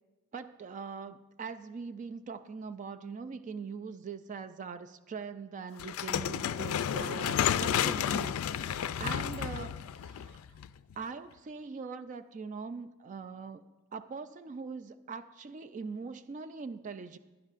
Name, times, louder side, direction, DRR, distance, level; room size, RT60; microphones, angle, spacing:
voice 1, 0.3-10.4 11.0-13.6 13.9-17.2, right 5 dB, 35° right, 12 dB, 0.3 m, -42 dB
sound 1, 5.8-10.9, left 9 dB, 90° left, 0.3 m, -31 dB
16.0 x 11.0 x 2.5 m, 1.2 s
head